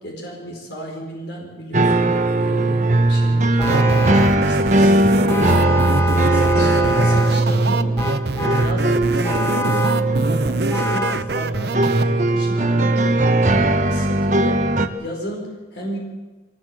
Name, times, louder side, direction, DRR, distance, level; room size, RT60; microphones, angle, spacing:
voice 1, 0.0-8.0 8.3-14.7 15.0-16.0, equal, 65° left, 0 dB, 4.8 m, -33 dB
sound 1, 1.7-14.9, right 2 dB, 40° right, 1.3 m, -19 dB
Vehicle horn car horn honking, 3.6-4.5 5.3-7.4 8.0-8.8 9.2-10.1 10.7-11.3, left 1 dB, 15° left, 0.7 m, -26 dB
sound 2, 3.6-12.0, right 3 dB, 60° right, 0.9 m, -25 dB
23.5 x 17.0 x 7.7 m, 1.2 s
head